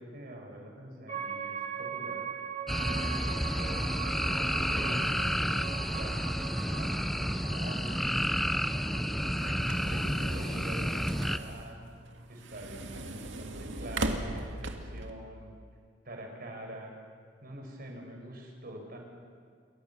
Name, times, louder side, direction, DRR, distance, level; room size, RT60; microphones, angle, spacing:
voice 1, 0.0-2.2 2.8-5.1 5.9-8.2 8.9-9.6 9.8-11.8 12.3-15.5 16.0-16.9 17.4-19.0, right 1 dB, 55° right, 2 dB, 5.8 m, -45 dB
sound 1, 1.1-11.5, right 8 dB, 35° right, 1.8 m, -41 dB
sound 2, 2.7-11.4, equal, ahead, 0.7 m, -30 dB
sound 3, 8.5-15.1, right 2 dB, 85° right, 2.1 m, -39 dB
28.5 x 22.5 x 7.2 m, 2.1 s
head